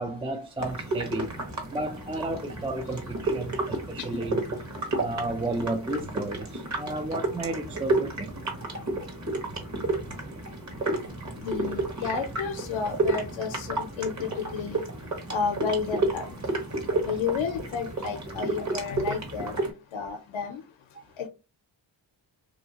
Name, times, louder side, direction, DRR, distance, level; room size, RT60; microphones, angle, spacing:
voice 1, 0.0-1.3 1.7-4.5 5.0-8.4, right 2 dB, 15° right, 0.4 m, -33 dB
sound 1, 0.6-19.7, right 2 dB, 35° right, 1.2 m, -31 dB
voice 2, 3.4-4.2 4.8-5.1 8.9-16.5 16.9-21.3, left 6 dB, 80° left, 0.6 m, -33 dB
2.7 x 2.3 x 2.8 m
cardioid pair, 55°, 46 cm